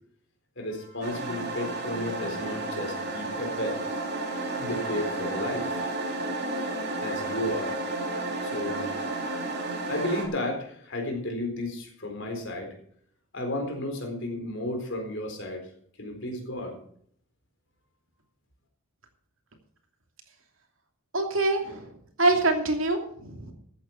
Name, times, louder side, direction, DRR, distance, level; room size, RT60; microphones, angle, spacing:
voice 1, 0.6-3.8 4.1-5.8 7.0-7.7 8.4-8.9 9.9-12.8 13.3-15.7 16.0-16.8, left 1 dB, 55° left, 3 dB, 4.1 m, -33 dB
sound 1, 1.0-10.3, right 2 dB, 45° right, 3.6 m, -32 dB
voice 2, 21.1-21.9 22.2-23.5, right 2 dB, 65° right, 4 dB, 2.7 m, -25 dB
14.5 x 8.7 x 5.8 m, 0.63 s
head